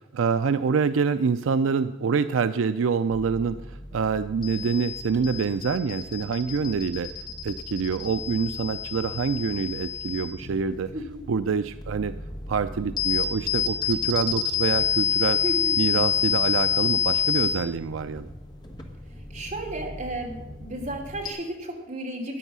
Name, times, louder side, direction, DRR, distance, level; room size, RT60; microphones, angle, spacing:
voice 1, 0.0-7.1 7.4-10.9 11.3-12.1 12.5-15.4 15.8-18.3, right 5 dB, 80° right, 11 dB, 0.4 m, -26 dB
sound 1, 3.1-21.3, left 8 dB, 20° left, 1.6 m, -29 dB
voice 2, 15.4-15.8 19.3-22.4, right 1 dB, 40° right, 0 dB, 2.9 m, -33 dB
13.5 x 10.0 x 6.1 m, 1.1 s
head